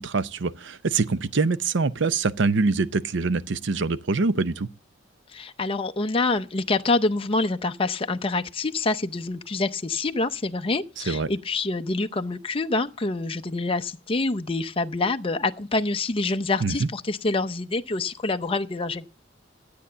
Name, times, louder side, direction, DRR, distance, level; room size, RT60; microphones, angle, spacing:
voice 1, 0.0-4.7 11.0-11.3 16.6-16.9, right 4 dB, 65° right, 0.6 m, -24 dB
voice 2, 5.3-19.1, left 3 dB, 30° left, 0.7 m, -26 dB
12.5 x 8.6 x 6.8 m
head